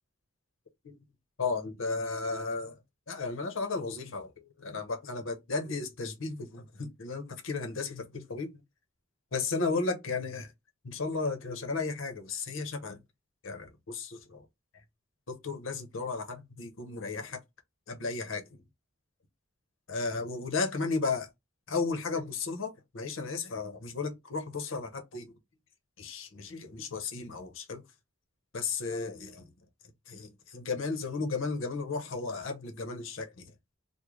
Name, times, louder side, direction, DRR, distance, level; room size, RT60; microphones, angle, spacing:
voice 1, 1.4-2.8 3.1-8.6 9.3-10.5 10.8-13.0 13.4-14.4 15.3-17.4 17.9-18.6 19.9-21.3 21.7-25.3 26.0-27.8 28.5-29.5 30.1-33.5, left 4 dB, 65° left, 0.8 m, -34 dB
3.1 x 2.1 x 3.6 m
head